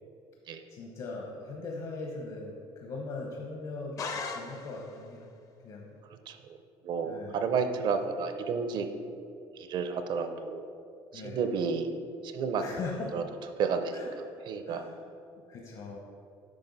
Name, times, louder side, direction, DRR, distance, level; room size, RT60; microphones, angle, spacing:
voice 1, 0.7-5.3 5.6-5.9 7.0-7.4 11.1-11.4 12.6-13.1 13.9-14.1 14.7-15.0 15.5-16.0, left 3 dB, 55° left, 0 dB, 0.9 m, -40 dB
sound 1, 4.0-5.1, left 4 dB, 35° left, 0.5 m, -38 dB
voice 2, 6.8-8.9 9.6-10.7 11.1-11.9 12.2-12.6 13.1-13.2 13.6-14.0 14.5-14.9, right 5 dB, 50° right, 8 dB, 0.6 m, -31 dB
8.7 x 5.5 x 4.0 m, 2.5 s
cardioid pair, 150°, 10 cm